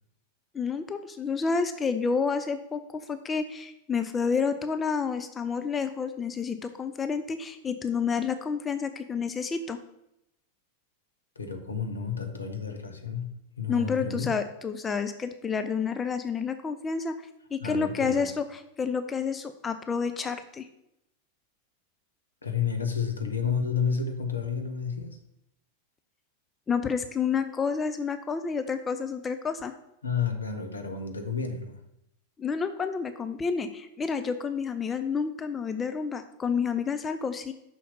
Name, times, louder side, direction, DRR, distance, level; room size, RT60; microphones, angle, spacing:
voice 1, 0.5-9.8 13.7-17.1 17.5-18.4 18.8-20.7 26.7-29.7 32.4-37.5, left 5 dB, 20° left, 9 dB, 0.5 m, -29 dB
voice 2, 11.4-14.3 17.6-18.3 22.4-25.2 30.0-31.8, left 6 dB, 75° left, 5 dB, 0.9 m, -31 dB
5.9 x 4.2 x 5.6 m, 0.82 s
figure-of-eight pair, 90°, 0 cm